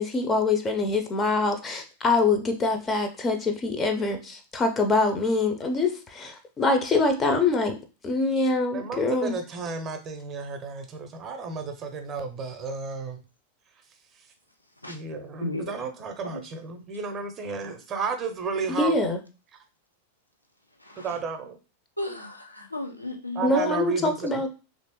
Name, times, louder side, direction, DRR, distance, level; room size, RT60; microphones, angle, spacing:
voice 1, 0.0-7.8 8.0-9.4 18.7-19.2 23.4-24.5, left 3 dB, 20° left, 6 dB, 0.5 m, -24 dB
voice 2, 8.7-13.2 14.9-19.0 21.0-21.6 22.1-22.3 23.3-24.4, right 4 dB, 30° right, 6 dB, 0.6 m, -32 dB
voice 3, 22.0-23.6, left 2 dB, 85° left, 3 dB, 0.5 m, -34 dB
3.1 x 2.5 x 2.9 m, 0.32 s
figure-of-eight pair, 90°, 0 cm